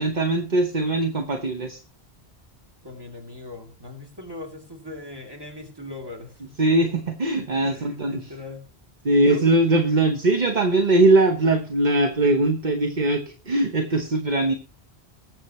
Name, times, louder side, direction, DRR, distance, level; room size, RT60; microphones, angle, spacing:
voice 1, 0.0-1.8 6.6-8.3 9.0-14.5, right 2 dB, 45° right, 7 dB, 1.2 m, -21 dB
voice 2, 2.8-6.5 7.6-8.7 9.1-9.4, left 2 dB, 20° right, 1 dB, 3.1 m, -39 dB
21.0 x 7.7 x 3.2 m, 0.35 s
omnidirectional pair, 1.1 m